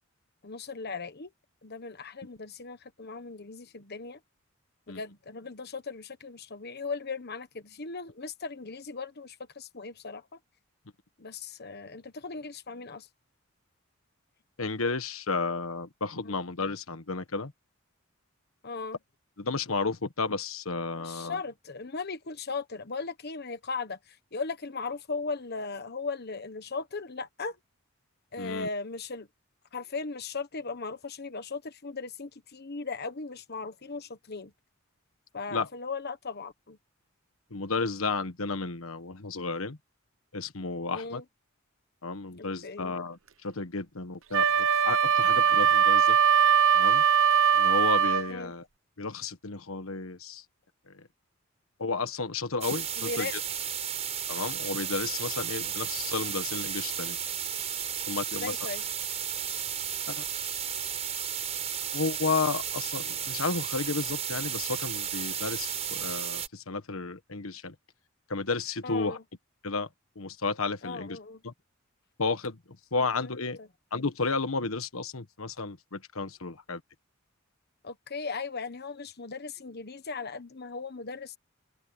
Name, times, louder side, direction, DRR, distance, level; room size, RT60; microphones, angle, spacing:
voice 1, 0.4-1.3 1.6-4.2 4.9-10.4 11.2-13.1 16.2-16.3 18.6-19.0 20.9-27.6 28.3-29.3 29.7-34.5 35.3-36.8 40.9-41.2 42.3-42.9 48.3-48.5 53.0-53.3 58.3-58.8 68.8-69.2 70.8-71.4 73.2-73.7 77.8-81.4, left 4 dB, 50° left, 1.3 m, -38 dB
voice 2, 14.6-17.5 19.4-21.4 28.4-28.7 35.5-35.7 37.5-39.8 40.3-41.2 42.0-46.2 46.7-47.0 47.5-48.7 49.0-50.4 50.9-51.1 51.8-53.4 54.3-57.2 58.1-58.6 60.1-60.2 61.9-67.7 68.3-69.2 69.6-69.9 70.1-71.2 71.4-71.5 72.2-72.6 72.9-73.6 73.9-76.8, left 4 dB, 85° left, 1.4 m, -32 dB
Wind instrument woodwind instrument, 44.3-48.3, right 7 dB, 65° right, 0.9 m, -21 dB
sound 1, 52.6-66.5, right 8 dB, 30° right, 4.4 m, -33 dB
open air
head